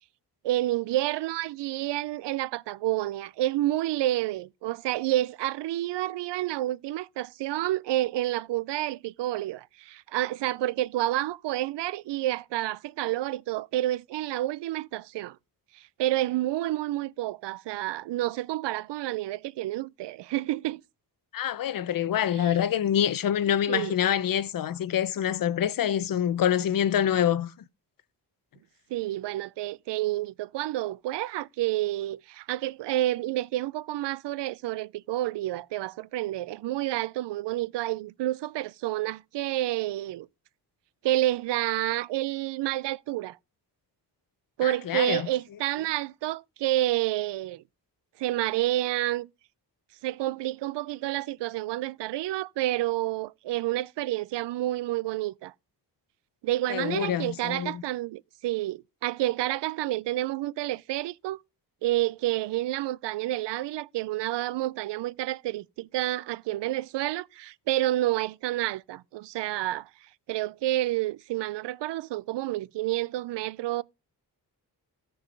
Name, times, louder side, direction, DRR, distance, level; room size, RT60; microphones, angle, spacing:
voice 1, 0.4-15.4 15.8-20.8 22.4-22.5 23.7-24.0 28.9-40.3 41.0-43.4 44.6-47.6 48.2-49.3 50.0-55.5 56.4-61.4 61.8-69.9 70.3-73.8, right 15 dB, 85° right, 0.5 m, -29 dB
voice 2, 21.3-27.5 44.6-45.3 56.7-57.8, left 10 dB, 55° left, 0.6 m, -26 dB
13.5 x 4.7 x 5.2 m
wide cardioid pair, 125°, 41 cm